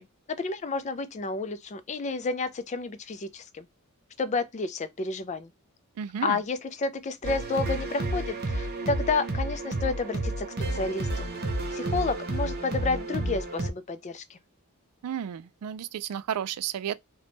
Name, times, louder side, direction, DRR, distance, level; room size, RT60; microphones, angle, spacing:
voice 1, 0.4-3.7 4.2-5.5 6.2-10.5 10.7-11.3 11.7-14.4, left 3 dB, 30° left, 0.4 m, -30 dB
voice 2, 6.0-6.4 15.0-17.0, right 9 dB, 85° right, 0.3 m, -32 dB
sound 1, 7.2-13.7, right 2 dB, 45° right, 0.6 m, -31 dB
3.4 x 2.2 x 3.8 m
head